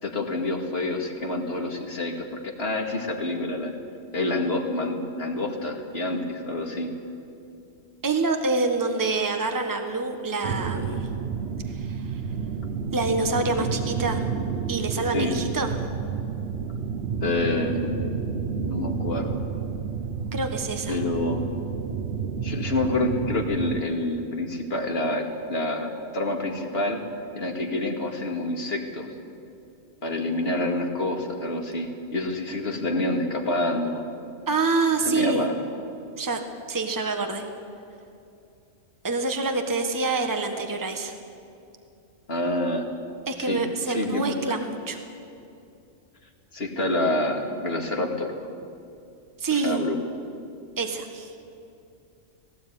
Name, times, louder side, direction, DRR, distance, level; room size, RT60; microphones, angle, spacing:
voice 1, 0.0-3.8 4.1-6.9 15.1-15.3 17.2-18.0 18.5-19.4 20.9-21.5 22.4-27.0 27.3-29.1 30.0-34.0 35.1-35.6 42.3-42.8 43.4-44.6 46.5-48.3 49.5-50.0, left 2 dB, 50° left, 2 dB, 2.4 m, -27 dB
voice 2, 8.0-11.1 11.7-12.0 12.9-14.2 14.7-15.7 20.3-21.0 34.5-35.5 36.2-36.4 36.7-37.4 39.0-41.1 43.3-45.0 49.4-49.8 50.8-51.3, right 3 dB, 15° right, 5 dB, 1.4 m, -26 dB
sound 1, 10.4-23.8, right 6 dB, 55° right, 1.0 m, -30 dB
18.0 x 18.0 x 9.3 m, 2.6 s
omnidirectional pair, 1.4 m